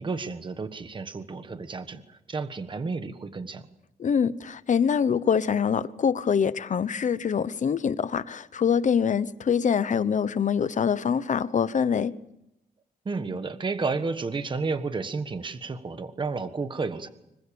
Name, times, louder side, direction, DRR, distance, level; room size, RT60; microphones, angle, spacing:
voice 1, 0.0-2.0 2.3-3.6 13.0-17.1, right 4 dB, 30° right, 1.4 m, -31 dB
voice 2, 4.0-12.2, left 7 dB, 50° left, 0.9 m, -24 dB
25.5 x 23.5 x 7.0 m
wide cardioid pair, 160°, 17 cm